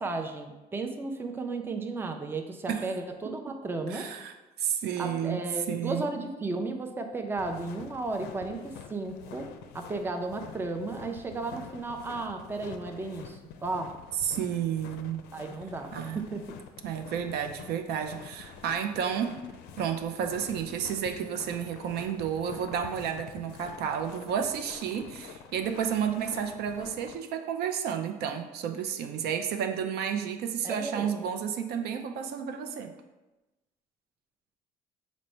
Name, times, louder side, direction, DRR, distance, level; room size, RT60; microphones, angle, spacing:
voice 1, 0.0-4.1 5.0-9.5 9.7-13.9 15.3-16.4 30.6-31.1, right 3 dB, 15° right, 5 dB, 0.4 m, -34 dB
voice 2, 3.9-4.3 4.6-5.4 5.7-6.3 14.2-15.2 15.9-16.2 16.8-19.3 19.8-32.9, right 8 dB, 75° right, 6 dB, 0.4 m, -31 dB
sound 1, 7.4-27.2, left 7 dB, 85° left, 0.4 m, -47 dB
5.0 x 2.1 x 4.3 m, 1.1 s
cardioid pair, 110°, 17 cm